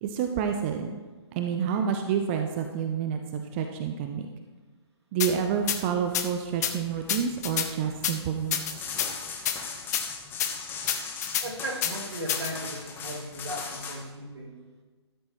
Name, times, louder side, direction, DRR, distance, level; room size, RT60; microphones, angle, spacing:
voice 1, 0.0-0.9 1.3-4.3 5.1-8.8, right 7 dB, 25° right, 5 dB, 0.6 m, -29 dB
sound 1, 5.2-5.3 5.7-5.8 6.1-6.3 6.6-6.7 7.1-7.7 8.0-8.1 8.5-9.1 9.5-9.6 9.9-10.0 10.4-10.5 10.9-11.5 11.8-11.9 12.3-12.5, left 9 dB, 35° left, 0.8 m, -27 dB
sound 2, 5.2-13.9, left 5 dB, 15° left, 1.1 m, -40 dB
voice 2, 11.4-14.6, right 1 dB, 70° right, -1 dB, 2.6 m, -37 dB
15.0 x 12.5 x 3.1 m, 1.3 s
figure-of-eight pair, 135°, 15 cm